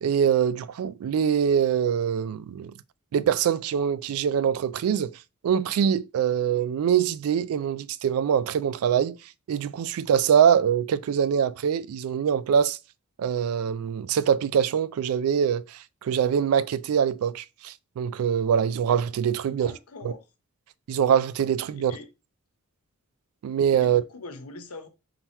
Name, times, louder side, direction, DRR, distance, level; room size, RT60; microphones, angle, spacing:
voice 1, 0.0-2.7 3.1-5.1 5.4-9.2 9.5-12.8 13.2-19.7 20.9-21.9 23.4-24.0, right 8 dB, 75° right, 0.3 m, -24 dB
voice 2, 19.5-20.2 21.7-22.1 23.8-24.9, left 3 dB, 85° left, 0.8 m, -42 dB
3.8 x 2.9 x 4.1 m
head